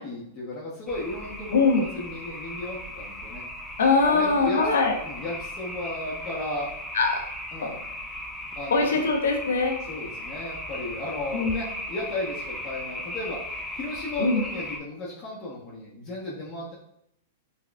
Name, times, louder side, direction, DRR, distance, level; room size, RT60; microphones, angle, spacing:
voice 1, 0.0-3.4 4.0-4.6 5.0-6.7 7.5-7.8 8.6-9.0 9.8-16.8, left 2 dB, 35° left, -6 dB, 0.8 m, -35 dB
sound 1, 0.9-14.8, left 1 dB, ahead, 0.4 m, -37 dB
voice 2, 1.5-1.9 3.8-4.9 6.9-7.2 8.7-9.8 11.3-11.6 14.2-14.4, left 4 dB, 85° left, 3 dB, 0.6 m, -22 dB
4.9 x 2.3 x 2.2 m, 0.77 s
hypercardioid pair, 125°, 0 cm